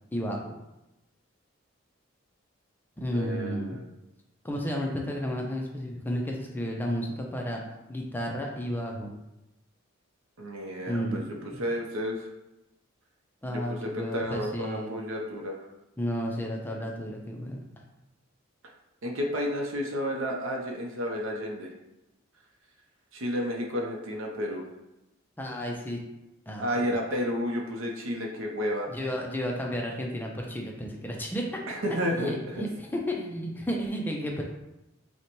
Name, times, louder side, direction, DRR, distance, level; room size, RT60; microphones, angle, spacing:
voice 1, 0.1-0.5 3.0-3.8 4.4-7.6 7.9-9.1 10.9-11.2 11.5-11.6 13.4-14.9 16.0-17.7 25.4-26.0 26.5-27.0 28.9-31.6 32.2-34.4, equal, 10° left, 0 dB, 0.4 m, -32 dB
voice 2, 3.1-3.8 10.4-11.2 11.6-12.3 13.5-15.6 19.0-21.7 23.1-24.7 25.5-25.6 26.6-28.9 31.7-32.6, equal, 75° right, 0 dB, 0.6 m, -31 dB
5.7 x 2.1 x 3.0 m, 0.94 s
head